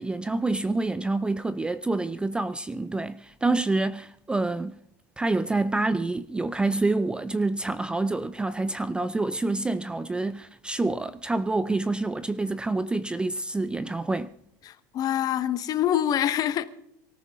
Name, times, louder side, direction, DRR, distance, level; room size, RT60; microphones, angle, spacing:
voice 1, 0.0-4.8 5.2-14.3, right 2 dB, 10° right, 0.5 m, -27 dB
voice 2, 14.6-16.7, left 11 dB, 35° left, 1.3 m, -25 dB
24.5 x 14.0 x 3.6 m
supercardioid pair, 130°, 10 cm